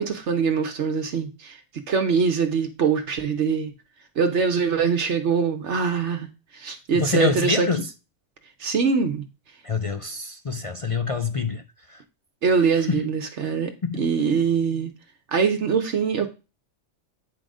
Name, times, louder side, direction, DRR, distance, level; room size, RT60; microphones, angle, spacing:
voice 1, 0.0-1.6 1.9-3.7 4.2-6.3 6.5-7.7 8.6-9.2 12.4-13.7 14.0-14.9 15.3-16.3, right 5 dB, 75° right, 1.2 m, -23 dB
voice 2, 6.9-7.8 9.6-11.6 11.9-12.0 12.9-13.0 13.8-14.0, left 4 dB, 40° left, 0.5 m, -25 dB
9.2 x 4.0 x 4.9 m
omnidirectional pair, 1.2 m